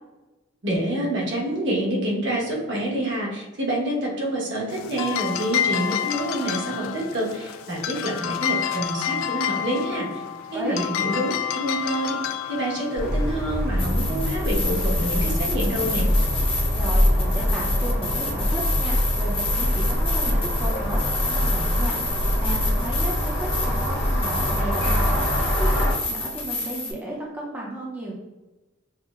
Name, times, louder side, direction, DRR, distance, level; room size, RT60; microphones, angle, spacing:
voice 1, 0.6-10.2 10.5-12.2 12.5-16.1, right 1 dB, 60° right, -3 dB, 1.1 m, -27 dB
sound 1, 4.7-15.1, left 9 dB, 85° left, 0.3 m, -29 dB
voice 2, 10.5-10.9 16.7-28.1, right 1 dB, 10° right, -4 dB, 0.5 m, -34 dB
sound 2, 13.0-25.9, equal, 55° left, 0.9 m, -23 dB
sound 3, 13.8-26.9, left 2 dB, 30° left, 0.8 m, -30 dB
6.0 x 2.0 x 2.4 m, 1.1 s
head